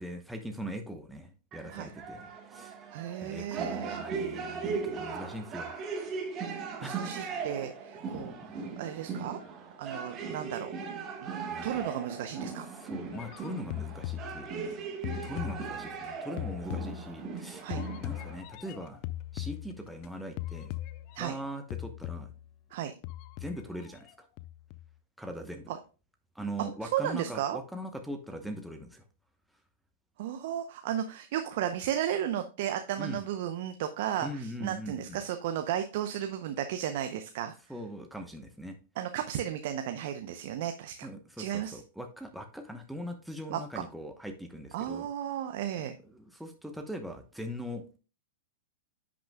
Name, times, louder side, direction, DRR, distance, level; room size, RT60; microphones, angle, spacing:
voice 1, 0.0-2.9 3.2-5.8 6.8-7.0 8.1-8.4 11.5-11.9 12.7-14.5 15.1-17.7 18.0-19.0 19.3-20.7 21.2-22.3 23.4-24.3 25.2-25.7 26.3-29.0 33.0-33.2 34.2-35.2 37.7-38.8 41.0-45.1 46.0-47.8, equal, ahead, 4 dB, 0.9 m, -41 dB
sound 1, 1.5-18.4, right 5 dB, 30° right, 1.5 m, -38 dB
voice 2, 2.9-4.0 6.8-9.4 9.8-10.7 11.2-12.7 17.6-17.8 21.1-21.3 22.7-22.9 25.7-25.8 26.6-27.6 30.2-37.5 39.0-41.1 41.4-41.8 43.5-43.6 44.7-45.9, right 10 dB, 55° right, 7 dB, 0.7 m, -34 dB
sound 2, 13.1-14.7 15.0-17.4 17.7-20.1 20.4-21.4 21.7-22.5 23.0-24.1 24.4-24.9, left 15 dB, 45° left, 0.5 m, -40 dB
10.0 x 6.2 x 2.3 m, 0.34 s
hypercardioid pair, 115°, 0 cm